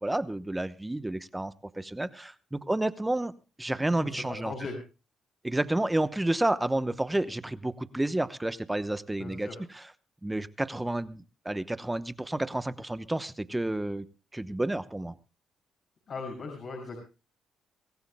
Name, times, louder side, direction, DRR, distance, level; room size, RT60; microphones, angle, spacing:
voice 1, 0.0-3.3 3.6-4.5 5.4-9.5 9.7-9.8 10.2-14.0 14.3-15.1, right 1 dB, 10° right, 13 dB, 0.9 m, -30 dB
voice 2, 4.0-4.8 9.2-9.6 16.1-17.0, left 3 dB, 55° left, 0 dB, 6.1 m, -38 dB
25.0 x 15.0 x 2.2 m, 0.32 s
cardioid pair, 90°, 0 cm